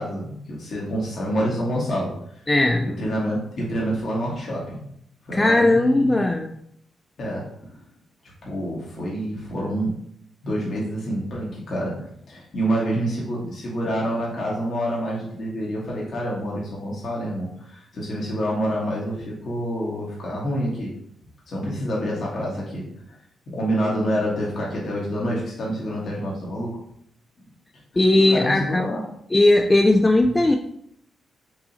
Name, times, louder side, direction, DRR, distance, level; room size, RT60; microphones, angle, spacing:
voice 1, 0.0-2.1 2.8-4.8 5.3-6.2 7.2-7.4 7.7-7.8 8.4-10.0 10.4-20.9 21.5-22.9 23.5-26.8 28.1-29.0, equal, 60° left, -5 dB, 1.4 m, -27 dB
voice 2, 2.5-2.9 5.3-6.5 28.0-29.0 29.3-30.6, left 2 dB, 25° left, 4 dB, 0.4 m, -18 dB
4.7 x 2.7 x 2.8 m, 0.71 s
supercardioid pair, 50°, 0 cm